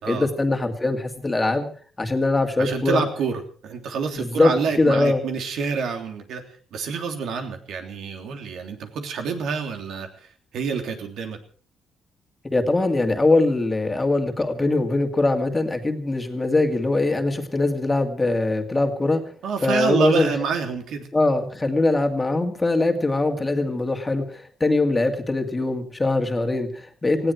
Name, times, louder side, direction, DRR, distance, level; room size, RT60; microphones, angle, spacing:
voice 1, 0.1-1.7 2.0-3.0 4.2-5.2 12.4-19.2 19.6-20.3 21.1-27.3, left 2 dB, 15° left, 5 dB, 2.2 m, -22 dB
voice 2, 2.6-6.4 6.7-11.4 19.4-21.1, right 5 dB, 80° right, 5 dB, 3.2 m, -27 dB
19.0 x 16.5 x 4.6 m, 0.42 s
cardioid pair, 140°, 0 cm